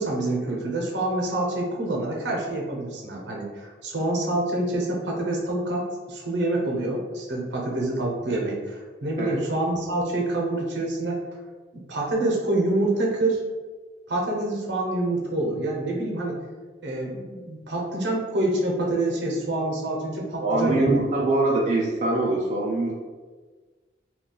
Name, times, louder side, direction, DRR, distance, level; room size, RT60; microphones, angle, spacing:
voice 1, 0.0-11.2 11.7-13.4 14.1-16.4 16.8-21.0, right 2 dB, 80° right, -1 dB, 0.7 m, -26 dB
voice 2, 20.4-22.9, right 2 dB, 40° right, -3 dB, 0.3 m, -23 dB
2.3 x 2.2 x 3.7 m, 1.4 s
head